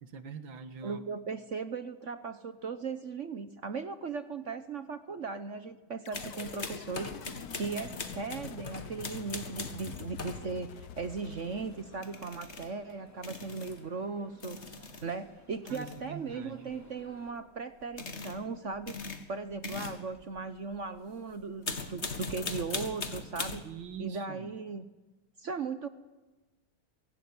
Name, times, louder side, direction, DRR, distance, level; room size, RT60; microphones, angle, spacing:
voice 1, 0.0-1.0 15.7-16.7 23.6-24.5, right 6 dB, 70° right, 11 dB, 2.2 m, -43 dB
voice 2, 0.8-7.1 7.5-14.6 15.0-19.0 19.3-22.0 22.3-23.6 24.0-24.9 25.4-25.9, right 4 dB, 50° right, 12 dB, 0.9 m, -38 dB
sound 1, 6.1-12.5, left 8 dB, 55° left, 1.3 m, -47 dB
sound 2, 6.1-10.5 12.0-12.8 13.2-13.8 14.4-15.1 15.5-16.1 16.7-17.1 17.8-18.4 18.7-21.0 21.4-23.9, left 4 dB, 35° left, 2.0 m, -40 dB
sound 3, 11.0-17.3, equal, 5° left, 2.9 m, -58 dB
23.5 x 16.5 x 9.7 m, 1.2 s
omnidirectional pair, 2.2 m